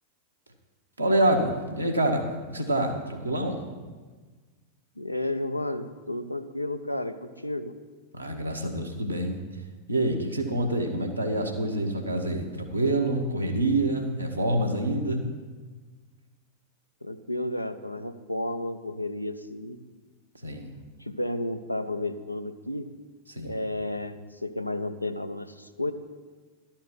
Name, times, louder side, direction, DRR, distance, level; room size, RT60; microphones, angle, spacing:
voice 1, 1.0-3.6 8.1-9.3 9.9-15.2 20.4-20.7 23.3-23.6, right 1 dB, 85° right, 1 dB, 1.1 m, -26 dB
voice 2, 5.0-7.7 17.0-19.8 21.0-22.9 23.4-25.9, left 1 dB, 85° left, 9 dB, 0.5 m, -32 dB
11.5 x 4.4 x 7.4 m, 1.4 s
figure-of-eight pair, 90°, 0 cm